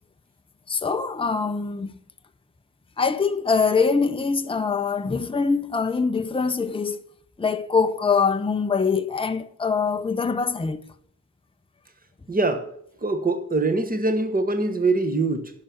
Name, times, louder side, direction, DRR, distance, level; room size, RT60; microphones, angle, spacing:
voice 1, 0.7-2.0 3.0-7.0 7.4-10.9, left 5 dB, 15° left, 0.6 m, -23 dB
voice 2, 12.3-12.7 13.0-15.5, right 3 dB, 25° right, 1.3 m, -23 dB
11.0 x 5.7 x 8.0 m
wide cardioid pair, 135°, 36 cm